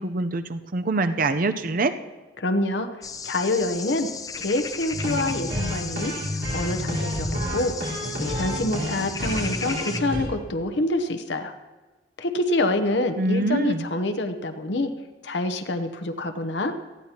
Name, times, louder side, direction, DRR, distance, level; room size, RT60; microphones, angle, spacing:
voice 1, 0.0-1.9 13.2-13.9, right 2 dB, 50° right, 10 dB, 0.6 m, -24 dB
voice 2, 2.4-2.9 3.2-4.1 4.4-6.1 6.5-7.9 8.2-11.5 12.2-14.9 15.2-16.7, left 2 dB, 70° left, 7 dB, 0.9 m, -26 dB
sound 1, 3.0-10.0, left 5 dB, 20° left, 0.5 m, -36 dB
sound 2, 4.9-10.2, equal, 80° right, 4.1 m, -30 dB
19.0 x 14.0 x 2.9 m, 1.2 s
head